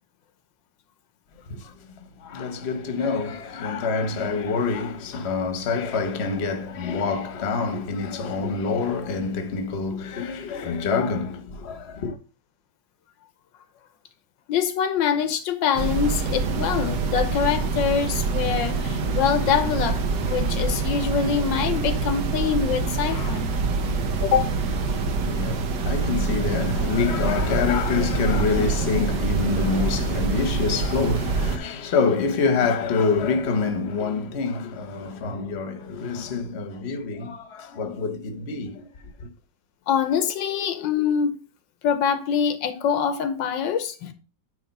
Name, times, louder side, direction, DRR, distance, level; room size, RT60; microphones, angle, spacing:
voice 1, 1.5-12.2 24.9-39.3, left 4 dB, 40° left, 1.1 m, -26 dB
voice 2, 14.5-23.5 24.2-24.5 39.9-41.4 41.8-44.1, left 7 dB, 90° left, 1.6 m, -24 dB
sound 1, 15.8-31.6, right 4 dB, 70° right, 1.6 m, -25 dB
9.3 x 3.4 x 5.2 m
omnidirectional pair, 2.0 m